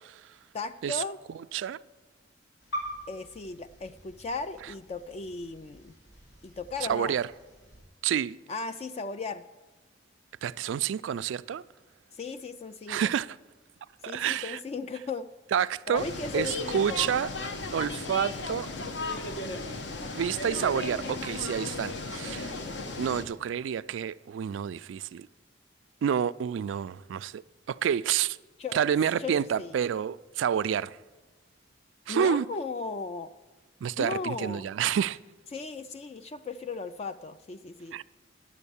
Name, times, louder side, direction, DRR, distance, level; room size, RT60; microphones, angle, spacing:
voice 1, 0.5-1.2 3.1-5.9 6.4-7.2 8.5-9.4 12.1-13.0 14.0-15.3 15.9-17.1 28.6-28.8 29.2-29.7 32.1-33.3 34.0-34.7 35.5-38.0, left 4 dB, 35° left, 0.3 m, -36 dB
sound 1, 2.6-7.8, equal, 90° left, 4.1 m, -44 dB
voice 2, 6.9-7.3 8.0-8.4 10.4-11.6 12.9-13.4 14.0-14.6 15.5-16.0 16.3-17.3 17.7-18.7 20.2-22.6 23.0-25.3 26.0-27.4 27.7-28.4 28.7-31.0 32.1-32.4 33.8-35.2 37.9-38.0, right 8 dB, 90° right, 0.3 m, -28 dB
sound 2, 15.9-23.2, left 3 dB, 70° left, 0.8 m, -35 dB
11.0 x 7.2 x 6.9 m
head